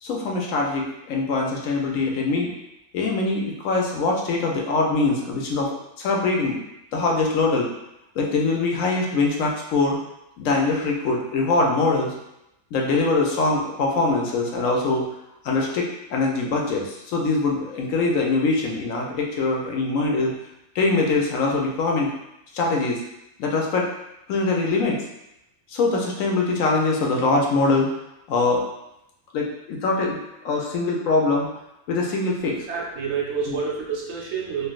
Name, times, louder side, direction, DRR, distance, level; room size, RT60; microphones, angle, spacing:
voice 1, 0.0-2.5 2.9-5.7 6.0-6.6 6.9-7.7 8.2-10.0 10.4-12.1 12.7-15.0 15.4-20.3 20.8-22.1 22.5-23.0 23.4-23.9 24.3-25.0 25.7-27.9 28.3-28.6 29.3-30.2 30.4-31.5 31.9-32.6 33.5-33.6, left 3 dB, 70° left, -1 dB, 0.9 m, -23 dB
voice 2, 32.7-34.7, right 6 dB, 60° right, -3 dB, 0.8 m, -28 dB
3.2 x 2.5 x 2.4 m, 0.86 s
omnidirectional pair, 1.5 m